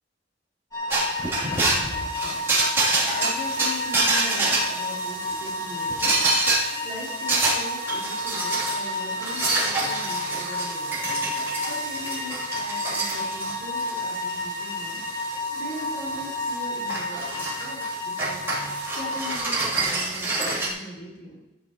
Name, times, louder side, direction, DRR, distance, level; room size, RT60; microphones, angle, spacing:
sound 1, 0.7-19.4, left 1 dB, 20° left, 2.4 m, -31 dB
sound 2, 0.9-20.7, right 2 dB, 15° right, 3.4 m, -27 dB
voice 1, 1.3-2.4 3.1-6.1 6.8-11.0 11.7-15.0 15.5-18.4 18.9-21.4, left 1 dB, 90° left, -5 dB, 4.5 m, -40 dB
15.0 x 9.4 x 3.2 m, 1.0 s
head